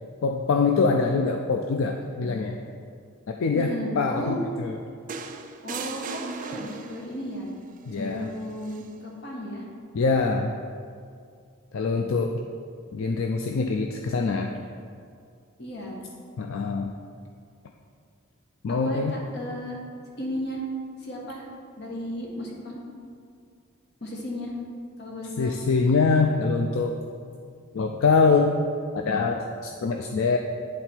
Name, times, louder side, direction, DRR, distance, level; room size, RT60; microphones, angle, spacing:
voice 1, 0.2-2.6 3.3-4.8 7.9-8.3 9.9-10.5 11.7-12.4 12.9-14.5 16.4-16.9 18.6-19.2 25.4-27.0 27.7-28.7 28.9-30.4, left 4 dB, 75° left, 3 dB, 0.4 m, -24 dB
voice 2, 3.5-4.4 5.6-7.5 7.9-9.6 15.6-16.0 18.7-19.8 20.2-20.6 21.0-21.5 21.8-22.8 24.0-24.5 25.0-25.6, left 1 dB, 55° left, -2 dB, 1.3 m, -34 dB
sound 1, 5.1-7.2 8.6-8.8, right 5 dB, 40° right, 0.3 m, -37 dB
9.7 x 3.9 x 4.4 m, 2.3 s
head